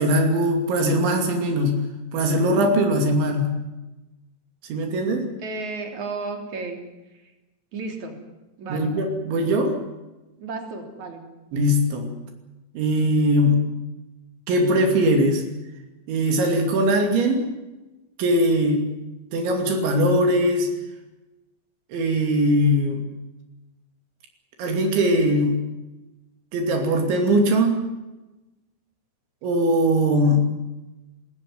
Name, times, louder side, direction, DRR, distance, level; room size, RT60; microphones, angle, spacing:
voice 1, 0.0-1.8 2.1-3.5 4.7-5.3 8.7-9.8 11.5-12.1 12.7-13.6 14.5-15.4 16.1-17.5 18.2-18.9 19.3-20.7 21.9-23.0 24.6-25.6 26.5-27.8 29.4-30.5, equal, 75° right, 3 dB, 5.1 m, -20 dB
voice 2, 5.4-6.8 7.1-7.3 7.7-8.2 8.6-8.9 10.4-11.2, right 3 dB, 40° right, 3 dB, 4.4 m, -33 dB
22.0 x 16.5 x 9.6 m, 1.0 s
omnidirectional pair, 5.4 m